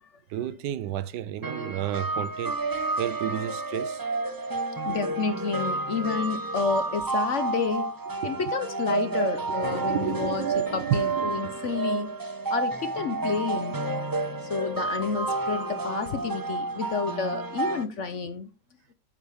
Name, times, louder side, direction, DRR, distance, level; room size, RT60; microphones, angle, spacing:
voice 1, 0.3-2.6 3.0-4.0 8.2-8.5 9.6-11.6, right 11 dB, 80° right, 1.2 m, -32 dB
sound 1, 1.4-17.8, right 3 dB, 30° right, 0.4 m, -30 dB
voice 2, 4.8-7.9 8.2-12.1 12.5-13.8 14.5-18.5, left 5 dB, 55° left, 0.9 m, -30 dB
9.0 x 7.2 x 3.4 m
omnidirectional pair, 1.8 m